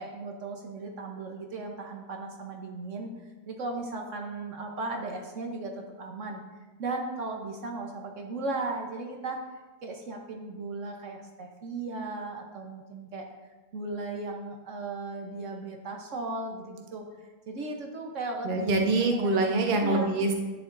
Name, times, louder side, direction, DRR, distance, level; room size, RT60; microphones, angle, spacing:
voice 1, 0.0-6.4 6.8-9.4 9.8-13.3 13.7-17.0 17.5-19.3 19.8-20.1, right 3 dB, 55° right, 2 dB, 1.1 m, -36 dB
voice 2, 18.4-20.3, right 2 dB, 40° right, 2 dB, 0.9 m, -25 dB
10.5 x 8.5 x 2.5 m, 1.2 s
omnidirectional pair, 1.6 m